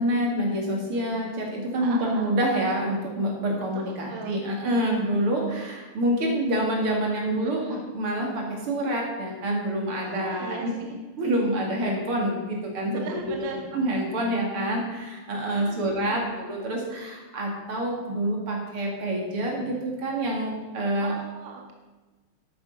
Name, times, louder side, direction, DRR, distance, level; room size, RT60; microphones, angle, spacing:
voice 1, 0.0-10.6 11.2-21.1, right 1 dB, 90° right, 0 dB, 3.3 m, -27 dB
voice 2, 1.8-2.4 3.7-4.4 7.3-7.8 10.0-11.0 12.9-13.6 15.5-16.3 21.0-21.7, right 5 dB, 65° right, 1 dB, 1.9 m, -39 dB
12.0 x 8.9 x 5.5 m, 1.2 s
omnidirectional pair, 2.3 m